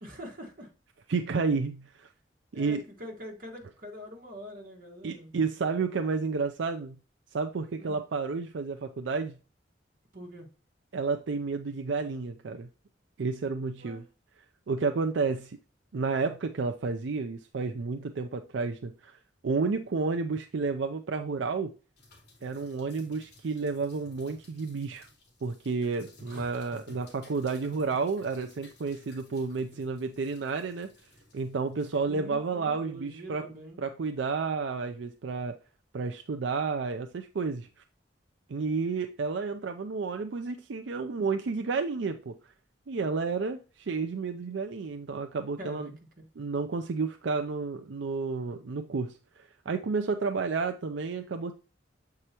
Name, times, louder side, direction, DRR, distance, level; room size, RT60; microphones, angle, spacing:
voice 1, 0.0-0.7 2.5-5.3 7.8-8.0 10.1-10.5 13.8-14.0 26.2-26.5 32.1-33.8 45.6-46.2, equal, 50° right, 1.8 m, -44 dB
voice 2, 1.1-2.1 2.5-2.8 5.0-7.0 7.3-9.4 10.9-12.7 13.2-14.0 14.7-15.6 15.9-21.7 22.4-25.1 25.4-30.9 31.3-33.4 33.8-35.6 35.9-37.7 38.5-42.5 42.9-45.9 46.4-51.5, right 4 dB, 75° right, 0.5 m, -31 dB
sound 1, 22.0-32.0, left 1 dB, 60° left, 2.9 m, -55 dB
7.8 x 4.8 x 2.9 m
head